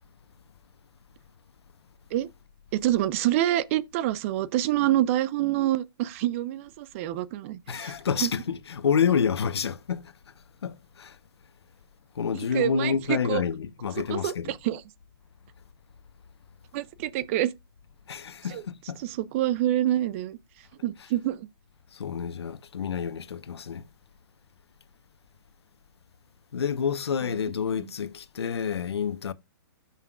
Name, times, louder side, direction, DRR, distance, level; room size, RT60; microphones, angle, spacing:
voice 1, 2.7-7.9 8.2-8.3 12.5-13.4 14.1-14.8 16.7-17.5 18.5-18.6 19.0-20.4 20.8-21.5 27.8-27.9, right 13 dB, 30° right, 0.6 m, -26 dB
voice 2, 7.7-10.1 10.6-11.2 12.2-14.5 18.1-19.0 21.9-23.8 26.5-29.3, left 7 dB, 85° left, 1.0 m, -28 dB
16.0 x 5.7 x 2.5 m
hypercardioid pair, 155°, 13 cm